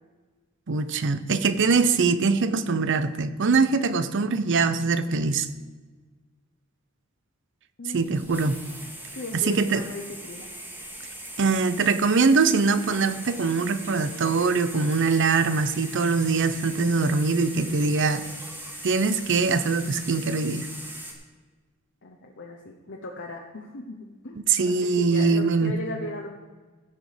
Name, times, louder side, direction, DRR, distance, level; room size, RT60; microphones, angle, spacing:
voice 1, 0.7-5.5 7.9-8.6 9.5-9.8 11.4-18.3 18.8-20.7 24.5-25.7, right 4 dB, 60° right, 13 dB, 0.7 m, -23 dB
voice 2, 7.8-8.5 9.1-10.5 22.0-26.3, left 2 dB, 60° left, 1 dB, 0.9 m, -38 dB
sound 1, 8.0-21.1, right 1 dB, 10° right, 1.7 m, -40 dB
16.0 x 6.2 x 5.0 m, 1.4 s
head